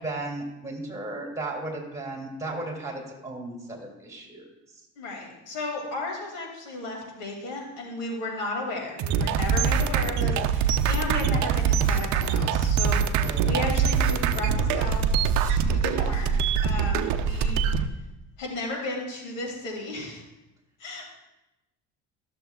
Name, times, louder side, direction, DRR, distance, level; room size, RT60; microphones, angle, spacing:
voice 1, 0.0-4.5 13.2-13.8, right 2 dB, 10° right, 0 dB, 2.5 m, -35 dB
voice 2, 5.0-15.0 15.4-17.6 18.4-20.2 20.8-21.1, left 2 dB, 85° left, 0 dB, 2.3 m, -34 dB
sound 1, 9.0-17.9, right 6 dB, 60° right, 0.6 m, -24 dB
13.0 x 6.8 x 2.3 m, 0.97 s
supercardioid pair, 90°, 32 cm